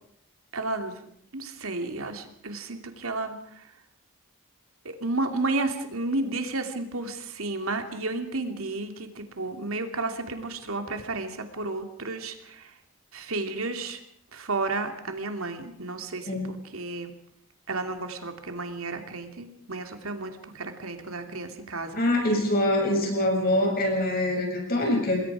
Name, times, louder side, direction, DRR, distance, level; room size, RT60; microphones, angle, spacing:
voice 1, 0.5-1.0 1.3-3.7 4.8-12.7 13.1-14.0 14.3-17.1 17.7-22.0, right 2 dB, 85° right, 6 dB, 2.8 m, -32 dB
voice 2, 22.0-25.2, left 1 dB, 45° left, 2 dB, 7.1 m, -24 dB
27.5 x 21.0 x 5.0 m, 0.68 s
head